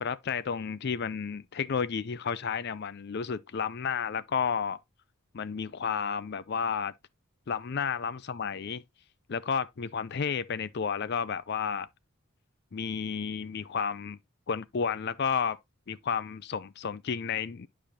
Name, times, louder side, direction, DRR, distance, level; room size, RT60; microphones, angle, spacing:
voice 1, 0.0-4.8 5.3-6.9 7.5-8.8 9.3-11.9 12.7-14.2 14.5-15.6 15.9-17.7, left 6 dB, 50° left, 0.4 m, -32 dB
11.0 x 4.9 x 2.8 m
head